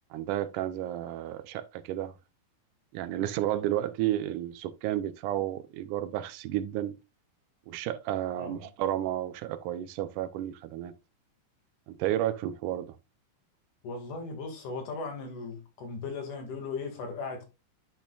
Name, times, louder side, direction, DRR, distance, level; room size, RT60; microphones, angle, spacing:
voice 1, 0.1-2.1 2.9-7.0 7.7-10.9 11.9-13.0, right 12 dB, 80° right, 2.0 m, -32 dB
voice 2, 13.8-17.5, left 4 dB, 70° left, 3.5 m, -37 dB
10.5 x 6.1 x 2.3 m
omnidirectional pair, 3.7 m